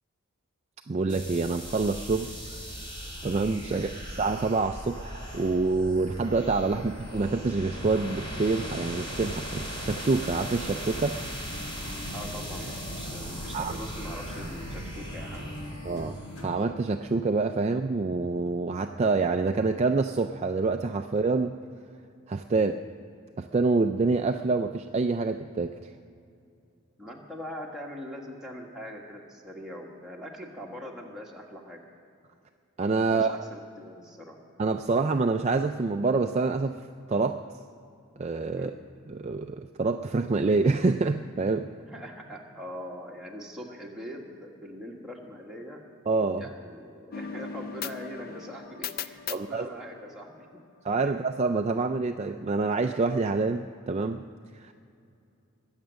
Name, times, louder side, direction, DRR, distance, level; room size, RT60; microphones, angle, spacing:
voice 1, 0.9-2.9 3.2-3.9 4.2-11.2 13.5-13.7 15.8-16.2 16.4-21.6 22.3-22.7 23.4-25.9 32.8-33.3 34.6-36.8 37.1-37.4 38.2-38.7 39.1-41.7 46.1-46.4 49.3-49.7 50.8-54.2 54.6-54.7, right 3 dB, 30° right, 6 dB, 0.3 m, -27 dB
sound 1, 1.1-16.4, equal, 20° left, 2.8 m, -38 dB
sound 2, 11.5-16.8, left 1 dB, 80° left, 1.8 m, -42 dB
voice 2, 12.1-15.5 22.5-22.8 27.0-31.8 33.0-34.4 38.5-38.8 41.9-45.8 46.3-50.5 51.0-51.1, equal, ahead, -3 dB, 1.6 m, -42 dB
sound 3, 47.1-50.7, left 7 dB, 45° left, 0.4 m, -39 dB
21.5 x 8.1 x 6.3 m, 2.5 s
head